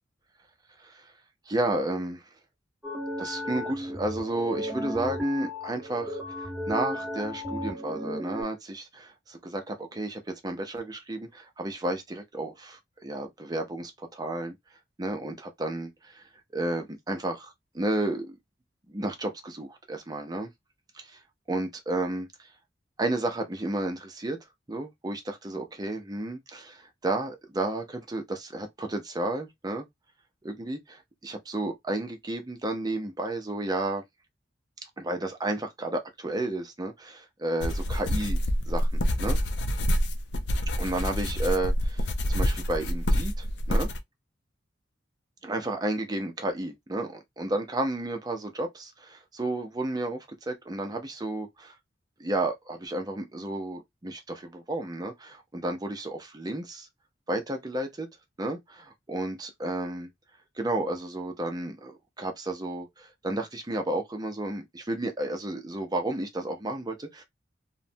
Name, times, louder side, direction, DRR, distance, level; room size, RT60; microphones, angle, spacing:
voice 1, 0.8-1.1 1.5-2.2 3.2-14.6 15.0-18.4 18.9-20.5 20.9-21.2 21.5-22.5 23.0-24.4 24.7-29.9 30.4-34.0 35.0-38.4 38.7-39.4 40.8-43.9 45.4-51.7 52.2-56.9 57.3-58.1 58.4-60.1 60.6-67.2, right 2 dB, 20° right, 0.5 m, -32 dB
sound 1, 2.8-8.4, left 1 dB, ahead, 0.9 m, -34 dB
sound 2, 37.6-44.0, equal, 65° left, 0.5 m, -27 dB
3.0 x 2.1 x 2.6 m
head